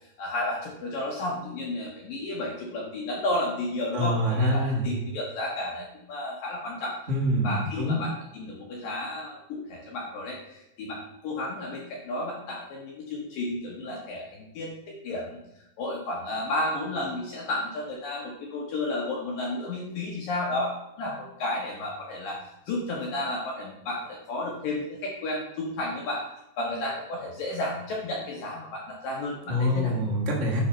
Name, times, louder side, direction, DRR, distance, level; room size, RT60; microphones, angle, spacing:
voice 1, 0.2-7.0 7.4-15.4 15.8-26.2 26.6-30.0, left 2 dB, 65° left, -2 dB, 2.3 m, -32 dB
voice 2, 3.9-4.9 7.1-8.0 29.4-30.6, equal, 45° right, -3 dB, 0.9 m, -25 dB
11.0 x 4.2 x 5.5 m, 0.84 s
omnidirectional pair, 5.3 m